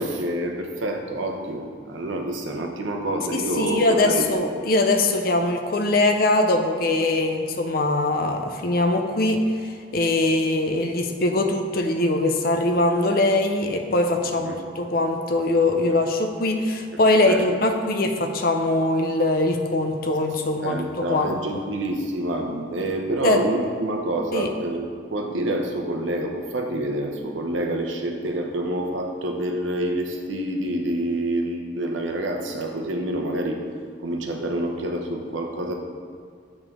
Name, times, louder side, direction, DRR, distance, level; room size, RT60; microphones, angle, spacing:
voice 1, 0.0-4.3 14.4-14.5 17.2-17.4 20.6-33.6 34.0-35.7, right 1 dB, 80° right, 2 dB, 0.8 m, -27 dB
voice 2, 3.3-9.4 9.9-21.6 23.2-23.4 24.3-24.5, left 2 dB, 50° left, 5 dB, 0.5 m, -22 dB
7.4 x 4.9 x 3.6 m, 2.1 s
head